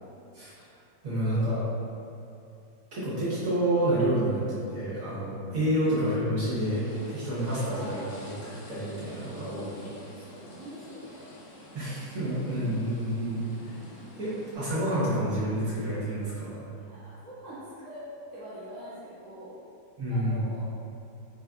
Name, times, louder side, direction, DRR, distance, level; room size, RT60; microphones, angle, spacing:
voice 1, 1.0-1.6 2.9-6.8 7.1-9.9 11.7-13.4 14.2-16.6 20.0-20.4, right 1 dB, 60° right, -10 dB, 1.1 m, -29 dB
sound 1, 6.6-14.6, left 1 dB, 75° left, 1.2 m, -47 dB
voice 2, 7.7-8.1 9.1-11.3 12.2-12.6 16.8-19.5 20.1-20.7, equal, 5° left, -13 dB, 0.6 m, -45 dB
4.1 x 2.5 x 2.2 m, 2.5 s
omnidirectional pair, 1.9 m